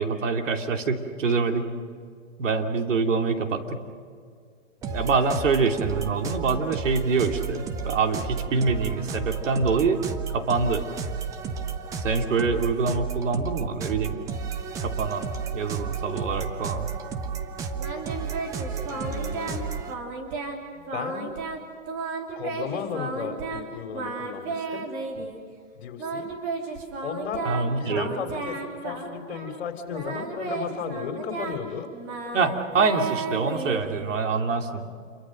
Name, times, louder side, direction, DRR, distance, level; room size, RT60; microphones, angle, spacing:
voice 1, 0.0-1.7 2.4-3.8 4.9-10.0 10.3-10.9 12.0-14.2 14.8-16.9 27.4-28.1 32.3-34.9, right 4 dB, 70° right, 5 dB, 3.0 m, -25 dB
voice 2, 4.8-5.1 18.9-19.7 20.7-21.3 22.4-24.9 25.2-25.3 25.8-26.3 27.0-31.9, left 7 dB, 55° left, 6 dB, 3.5 m, -35 dB
sound 1, 4.8-19.9, right 5 dB, 10° right, 0.6 m, -32 dB
Singing, 17.8-19.6 19.9-20.6 20.9-21.6 21.9-23.6 23.9-25.4 26.0-29.6 29.9-34.3, right 4 dB, 30° right, 3.6 m, -33 dB
28.0 x 23.5 x 6.5 m, 2.2 s
hypercardioid pair, 145°, 39 cm